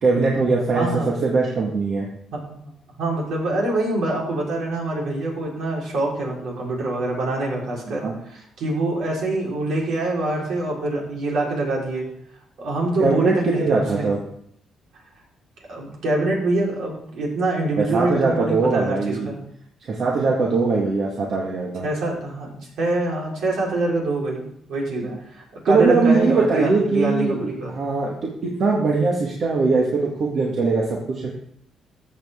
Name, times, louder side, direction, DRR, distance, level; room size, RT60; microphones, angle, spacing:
voice 1, 0.0-2.1 7.9-8.1 13.0-14.2 17.8-19.3 19.8-21.8 25.7-31.4, right 4 dB, 60° right, -2 dB, 1.8 m, -21 dB
voice 2, 0.7-1.1 2.3-2.6 3.0-8.0 8.3-12.1 12.6-14.0 15.7-19.4 21.8-24.4 24.7-27.7, right 2 dB, 75° right, -3 dB, 4.1 m, -25 dB
13.5 x 7.1 x 3.6 m, 0.69 s
cardioid pair, 90°, 0 cm